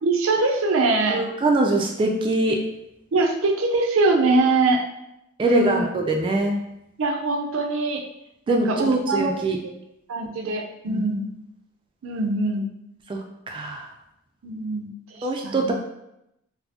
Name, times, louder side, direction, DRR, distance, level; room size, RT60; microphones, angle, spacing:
voice 1, 0.0-1.2 3.1-4.8 5.4-5.9 7.0-8.0 8.5-9.3 10.1-11.2 12.0-12.7 14.4-14.9 15.4-15.7, right 3 dB, 80° right, 2 dB, 0.5 m, -23 dB
voice 2, 1.1-2.6 5.4-6.6 8.5-9.6 10.9-11.0 13.1-13.9 15.2-15.7, right 2 dB, 25° right, 1 dB, 0.3 m, -23 dB
4.2 x 2.0 x 2.8 m, 0.84 s
head